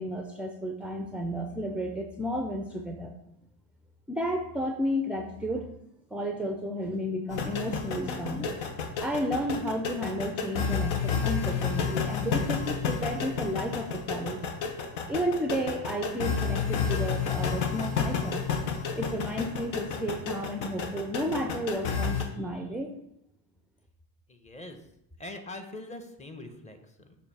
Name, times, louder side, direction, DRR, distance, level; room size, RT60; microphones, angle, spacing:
voice 1, 0.0-3.1 4.1-5.7 6.1-8.6 9.0-14.4 15.1-18.4 18.9-22.9, equal, 5° right, 4 dB, 0.4 m, -32 dB
sound 1, 7.3-22.3, left 6 dB, 85° left, 1.0 m, -31 dB
voice 2, 24.3-24.8 25.2-27.2, left 2 dB, 15° left, 6 dB, 0.8 m, -43 dB
6.8 x 2.7 x 5.4 m, 0.79 s
cardioid pair, 105°, 42 cm